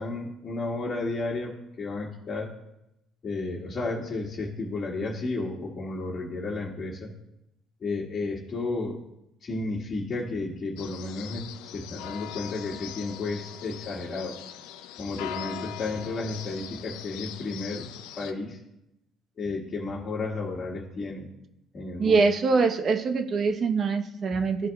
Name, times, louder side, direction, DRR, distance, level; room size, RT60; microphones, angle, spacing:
voice 1, 0.0-2.5 3.2-7.1 7.8-9.0 9.4-14.4 15.0-17.9 18.2-18.6 19.4-21.3 21.7-22.2, left 3 dB, 40° left, -4 dB, 1.7 m, -32 dB
sound 1, 10.8-18.3, left 11 dB, 85° left, 0.5 m, -41 dB
voice 2, 22.0-24.7, right 4 dB, 45° right, 8 dB, 0.9 m, -24 dB
13.5 x 4.8 x 2.3 m, 0.85 s
supercardioid pair, 80°, 0 cm